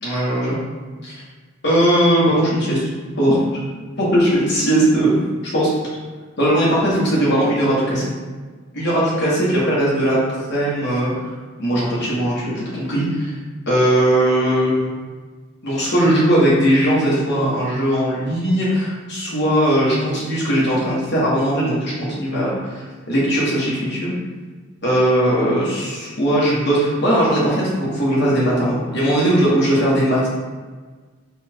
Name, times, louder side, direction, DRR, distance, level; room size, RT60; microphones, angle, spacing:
voice 1, 0.0-0.6 1.1-1.2 1.6-2.9 3.2-3.4 4.0-5.2 5.4-5.7 6.4-8.1 8.7-11.1 11.6-13.3 13.7-15.0 15.6-24.1 24.8-30.3, right 1 dB, 55° left, -6 dB, 1.4 m, -19 dB
4.3 x 2.5 x 4.4 m, 1.4 s
head